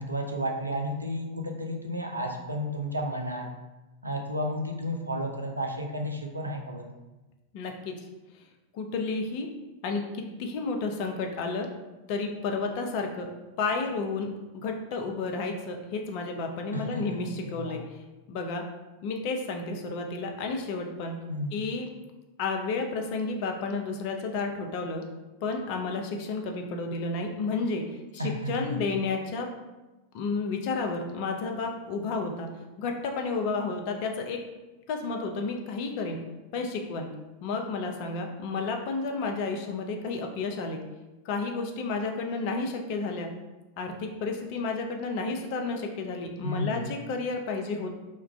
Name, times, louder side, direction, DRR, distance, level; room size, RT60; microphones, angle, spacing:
voice 1, 0.0-3.5 4.0-6.9 16.7-17.2 17.4-17.8 21.3-21.6 28.2-28.8 46.4-46.9, equal, 85° right, 2 dB, 0.4 m, -32 dB
voice 2, 7.5-8.0 8.7-9.5 9.8-11.7 12.1-13.3 13.6-14.3 14.5-18.0 18.3-18.6 19.0-21.2 21.5-21.9 22.4-25.0 25.4-29.5 30.1-32.5 32.8-34.4 34.9-36.2 36.5-37.1 37.4-40.8 41.2-43.3 43.8-47.9, left 3 dB, 45° left, 3 dB, 0.4 m, -31 dB
2.3 x 2.2 x 3.5 m, 1.1 s
figure-of-eight pair, 90°, 0 cm